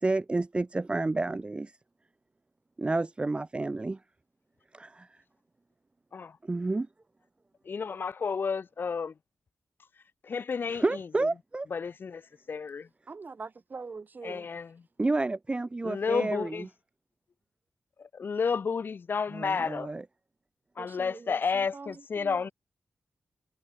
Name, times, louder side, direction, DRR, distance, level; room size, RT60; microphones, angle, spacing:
voice 1, 0.0-1.7 2.8-4.0 4.7-5.1 6.4-6.9 10.7-11.7 15.0-16.7 19.3-20.0, right 2 dB, 25° right, 0.7 m, -30 dB
voice 2, 7.7-9.1 10.3-10.8 11.7-12.2 12.5-12.9 14.2-14.7 15.8-16.6 18.0-19.9 20.8-22.5, left 5 dB, 50° left, 0.6 m, -31 dB
voice 3, 13.1-14.5 20.8-21.4 21.7-22.5, right 4 dB, 45° right, 3.8 m, -43 dB
wide cardioid pair, 90°, 4 cm